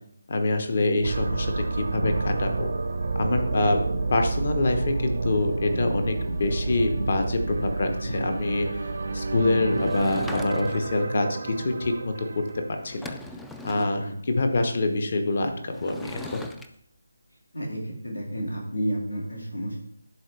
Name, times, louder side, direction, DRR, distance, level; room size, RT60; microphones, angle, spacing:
voice 1, 0.3-2.7 3.1-3.8 4.1-8.9 9.1-12.4 12.7-13.2 13.6-16.4, left 2 dB, 45° left, 5 dB, 1.1 m, -26 dB
sound 1, 1.0-12.9, right 3 dB, 55° right, 0.6 m, -30 dB
Sliding door / Wood, 9.8-11.0 12.5-12.6 12.8-14.0 15.7-16.7, left 1 dB, 5° left, 0.3 m, -40 dB
voice 2, 13.7-14.2 17.5-19.8, equal, 85° left, -1 dB, 2.1 m, -31 dB
10.5 x 4.0 x 3.3 m, 0.70 s
figure-of-eight pair, 155°, 0 cm